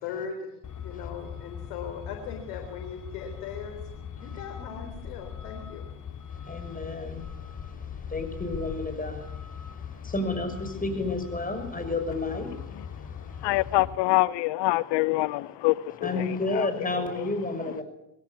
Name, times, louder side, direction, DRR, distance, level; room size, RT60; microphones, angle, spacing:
voice 1, 0.0-0.5 0.8-3.8 4.2-5.9, left 6 dB, 75° left, 4.0 m, -38 dB
Truck, 0.6-14.0, left 7 dB, 40° left, 2.6 m, -40 dB
voice 2, 6.4-7.3 8.1-9.3 10.0-12.5 16.0-17.8, left 2 dB, 15° left, 6.3 m, -30 dB
voice 3, 13.4-16.2, left 19 dB, 60° left, 0.8 m, -25 dB
21.5 x 17.5 x 8.5 m
hypercardioid pair, 80°, 48 cm